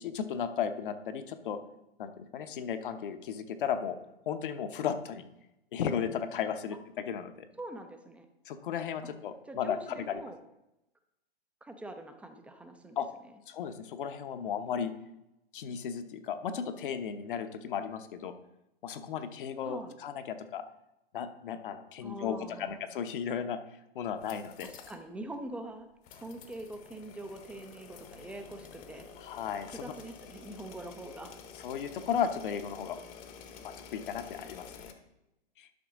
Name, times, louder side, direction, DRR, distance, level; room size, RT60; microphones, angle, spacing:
voice 1, 0.0-1.6 2.0-4.0 4.3-5.2 5.7-7.3 8.5-10.2 13.0-13.1 13.5-14.9 15.5-18.3 18.8-20.6 21.1-23.6 23.9-24.7 29.2-29.9 31.6-33.0 33.6-34.9 35.6-35.7, left 8 dB, 55° left, 8 dB, 1.0 m, -35 dB
voice 2, 7.6-8.3 9.0-9.1 9.4-10.4 11.6-13.0 19.6-19.9 22.0-22.8 24.6-25.9 26.1-29.1 29.7-31.4, right 1 dB, 5° right, 7 dB, 0.5 m, -44 dB
sound 1, 24.1-25.0 25.3-25.4 26.0-34.9, left 7 dB, 25° left, 0.9 m, -50 dB
11.5 x 5.8 x 3.7 m, 0.90 s
figure-of-eight pair, 120°, 32 cm